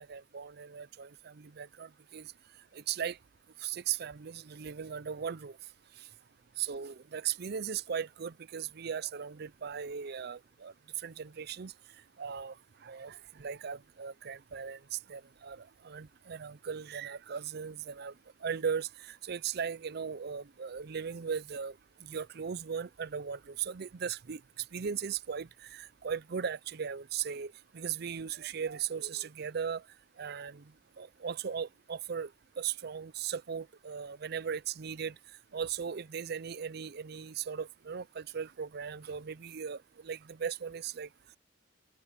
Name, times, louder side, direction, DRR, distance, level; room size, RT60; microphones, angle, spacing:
voice 1, 0.1-1.9 2.1-2.2 2.9-3.2 3.6-5.5 6.6-10.7 11.0-11.7 12.2-12.5 12.8-13.1 13.4-15.6 15.8-18.1 18.4-18.9 19.3-21.7 22.0-24.4 24.7-29.8 30.2-30.6 31.0-32.3 32.6-35.1 35.5-39.8 40.0-41.1, right 7 dB, 55° right, 0.5 m, -37 dB
head